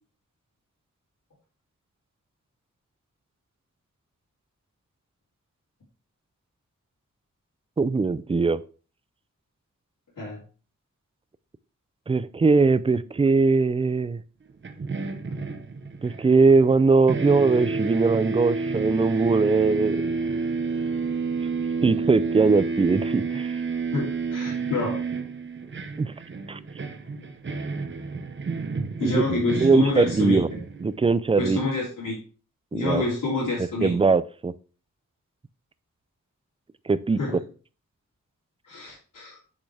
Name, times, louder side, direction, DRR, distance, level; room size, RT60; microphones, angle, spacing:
voice 1, 7.8-8.6 12.1-14.2 16.0-20.1 21.8-23.6 26.0-26.1 26.5-26.6 29.0-29.2 29.6-30.5 30.8-31.6 32.7-33.0 33.8-34.5 36.9-37.2, right 4 dB, 20° right, 15 dB, 0.3 m, -21 dB
sound 1, 14.6-16.8 17.1-31.1, right 4 dB, 40° right, 0.9 m, -30 dB
voice 2, 23.9-25.0 28.1-28.2 29.0-30.4 31.4-32.2 32.7-34.0 37.2-37.4 38.6-39.4, left 3 dB, 85° left, -8 dB, 3.2 m, -28 dB
7.6 x 7.0 x 3.3 m, 0.38 s
wide cardioid pair, 150°, 31 cm